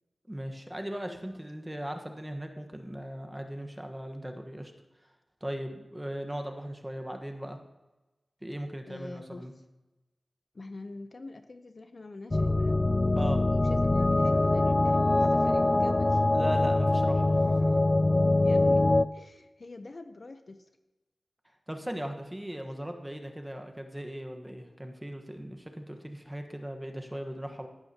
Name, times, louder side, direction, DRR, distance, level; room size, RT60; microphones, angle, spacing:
voice 1, 0.3-4.7 5.4-7.6 8.4-9.5 13.2-13.5 16.3-17.8 21.7-27.7, equal, 10° right, 4 dB, 1.3 m, -38 dB
voice 2, 8.9-9.5 10.5-12.8 13.5-16.4 18.4-20.6, left 2 dB, 50° left, 8 dB, 0.7 m, -45 dB
sound 1, 12.3-19.1, left 2 dB, 30° left, 0.3 m, -23 dB
14.5 x 11.5 x 2.9 m, 1.1 s
wide cardioid pair, 90°, 0 cm